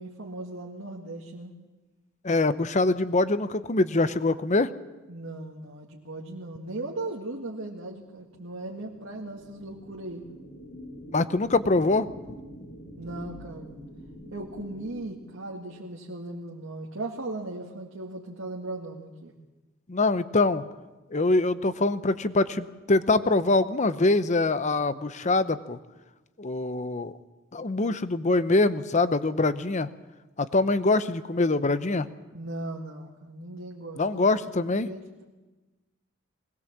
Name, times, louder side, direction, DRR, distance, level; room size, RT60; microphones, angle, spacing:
voice 1, 0.0-1.6 5.1-10.2 13.0-13.8 14.3-19.4 32.3-34.3 34.6-35.2, right 2 dB, 75° right, -1 dB, 2.0 m, -38 dB
voice 2, 2.2-4.7 11.1-12.1 19.9-20.6 21.1-25.8 26.4-27.1 27.5-29.9 30.4-32.1 34.0-34.9, left 2 dB, 35° left, 13 dB, 0.8 m, -24 dB
sound 1, 7.4-15.9, equal, 55° left, 3.6 m, -46 dB
20.5 x 19.5 x 7.4 m, 1.2 s
head